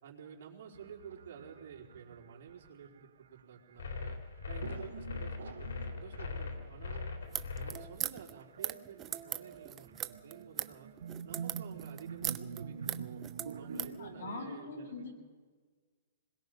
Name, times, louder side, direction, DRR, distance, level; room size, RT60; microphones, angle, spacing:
voice 1, 0.0-4.2 4.5-7.1 7.6-10.9 11.2-13.3 13.6-15.1, right 7 dB, 50° right, -2 dB, 4.2 m, -51 dB
sound 1, 0.7-3.6 4.6-14.3, right 6 dB, 85° right, 1.3 m, -47 dB
sound 2, 3.8-7.7, left 4 dB, 90° left, 3.3 m, -40 dB
sound 3, 7.2-14.0, right 11 dB, 15° right, 0.6 m, -39 dB
voice 2, 13.7-15.1, left 3 dB, 65° left, 0 dB, 7.4 m, -43 dB
26.5 x 21.5 x 5.4 m, 1.5 s
hypercardioid pair, 165°, 0 cm